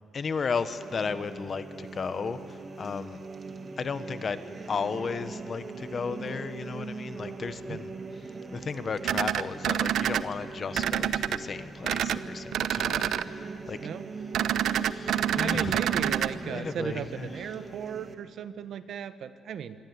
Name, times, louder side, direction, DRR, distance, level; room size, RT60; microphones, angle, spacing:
voice 1, 0.1-3.2 3.8-4.4 4.7-7.9 8.5-13.8 14.7-16.1 16.4-17.3, left 5 dB, 35° left, 12 dB, 1.1 m, -34 dB
sound 1, 0.7-18.1, right 4 dB, 30° right, 2.3 m, -41 dB
sound 2, 9.0-10.2 10.7-11.4 11.8-12.2 12.5-13.2 14.3-16.3, right 10 dB, 85° right, 0.8 m, -27 dB
voice 2, 15.2-19.8, right 8 dB, 65° right, 12 dB, 1.3 m, -36 dB
27.0 x 22.5 x 9.5 m, 2.8 s
cardioid pair, 150°, 0 cm